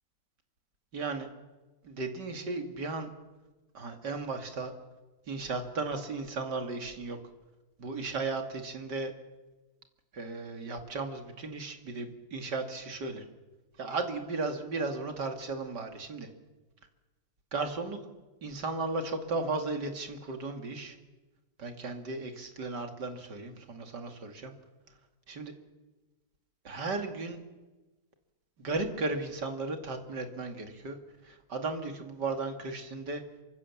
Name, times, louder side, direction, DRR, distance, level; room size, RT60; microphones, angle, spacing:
voice 1, 0.9-1.3 1.8-3.1 3.7-4.7 5.3-7.2 7.8-9.1 10.1-13.2 13.8-16.3 17.5-18.0 18.4-21.0 21.6-24.5 25.3-25.5 26.6-27.4 28.6-31.0 31.2-33.2, right 3 dB, 75° right, 5 dB, 3.1 m, -35 dB
27.0 x 24.5 x 7.3 m, 1.2 s
omnidirectional pair, 1.8 m